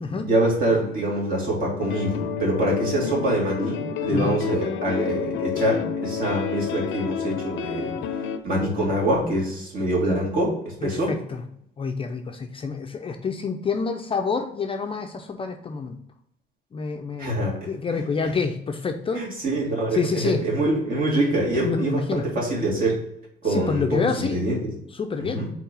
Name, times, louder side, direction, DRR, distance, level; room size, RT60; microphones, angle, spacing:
voice 1, 0.3-7.9 8.4-11.2 17.2-17.6 19.1-23.0 23.4-24.6 25.2-25.5, right 1 dB, 50° right, -3 dB, 2.4 m, -25 dB
sound 1, 1.8-8.4, left 7 dB, 90° left, 0.6 m, -29 dB
voice 2, 10.8-11.4 11.8-16.0 16.7-19.2 19.9-20.4 21.5-22.3 23.5-24.4 24.9-25.5, left 5 dB, 30° left, 5 dB, 0.5 m, -27 dB
4.6 x 4.0 x 5.3 m, 0.76 s
cardioid pair, 150°, 19 cm